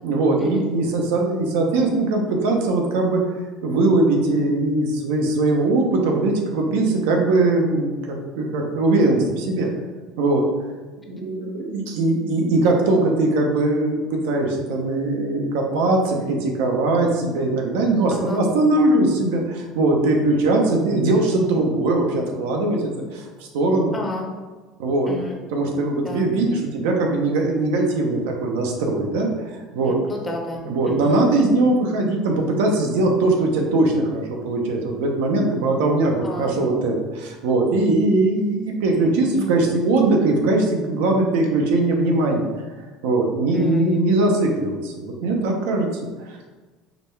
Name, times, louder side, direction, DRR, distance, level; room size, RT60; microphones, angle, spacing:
voice 1, 0.0-3.2 3.6-9.7 10.2-10.5 11.1-23.9 24.8-25.1 25.5-30.0 30.6-42.4 43.0-45.9 46.3-46.4, right 2 dB, 90° right, 1 dB, 0.7 m, -20 dB
voice 2, 23.9-24.3 25.1-25.4 26.0-26.2 29.9-31.2 36.2-36.5 39.2-39.5 43.5-44.2, left 2 dB, 20° left, 1 dB, 0.7 m, -32 dB
4.8 x 2.3 x 3.2 m, 1.3 s
cardioid pair, 125°, 0 cm